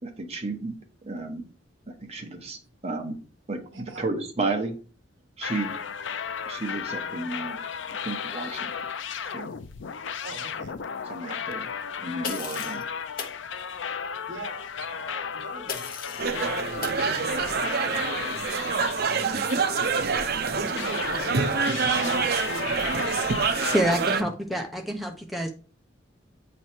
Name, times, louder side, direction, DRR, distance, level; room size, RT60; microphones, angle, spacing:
voice 1, 0.0-0.7 1.0-1.5 1.9-3.2 3.5-4.7 5.4-5.8 6.5-7.6 8.0-8.9 9.2-9.5 11.1-11.7 12.0-12.8, right 2 dB, 35° right, 3 dB, 1.1 m, -32 dB
voice 2, 3.7-4.1 10.2-10.8 14.3-17.6 18.9-19.5 20.5-23.3 24.1-24.3, right 2 dB, 70° right, 6 dB, 1.2 m, -41 dB
sound 1, 5.4-20.3 20.8-23.8, left 7 dB, 75° left, 0.5 m, -34 dB
sound 2, 12.2-12.8 13.2-13.4 15.7-16.3 16.8-17.0, left 6 dB, 50° left, 0.9 m, -35 dB
sound 3, 16.2-24.2, right 5 dB, 55° right, 0.6 m, -26 dB
voice 3, 23.7-25.5, equal, ahead, 2 dB, 0.6 m, -27 dB
8.3 x 3.2 x 4.3 m, 0.39 s
head